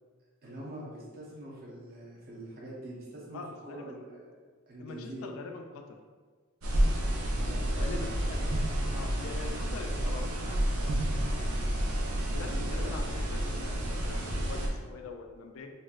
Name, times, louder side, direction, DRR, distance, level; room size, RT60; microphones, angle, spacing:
voice 1, 0.4-4.3 4.7-5.3 7.3-8.5 12.4-13.0, right 1 dB, 45° right, -6 dB, 0.7 m, -44 dB
voice 2, 3.3-3.9 4.8-5.8 7.7-8.2 8.5-8.6 8.9-11.0 12.3-15.7, left 4 dB, 70° left, 3 dB, 0.3 m, -44 dB
sound 1, 6.6-14.7, right 1 dB, 85° right, 0.6 m, -30 dB
4.0 x 2.2 x 2.4 m, 1.5 s
head